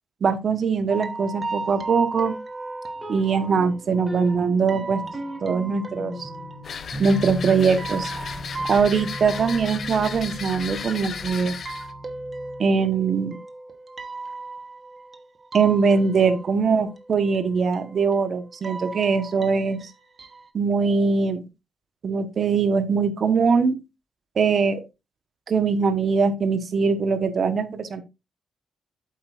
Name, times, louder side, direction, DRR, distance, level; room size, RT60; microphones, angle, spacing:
voice 1, 0.2-2.3 3.1-5.0 5.4-6.3 7.0-8.1 8.7-11.6 12.6-13.4 15.5-19.8 20.5-21.4 22.0-23.8 24.4-24.8 25.5-28.0, right 5 dB, 50° right, 10 dB, 1.2 m, -22 dB
sound 1, 0.9-20.5, right 3 dB, 35° right, 1.2 m, -37 dB
sound 2, 3.0-12.7, equal, 10° right, 4.1 m, -37 dB
sound 3, 6.6-11.9, left 6 dB, 55° left, 0.8 m, -35 dB
8.6 x 7.8 x 2.5 m, 0.25 s
cardioid pair, 115°, 0 cm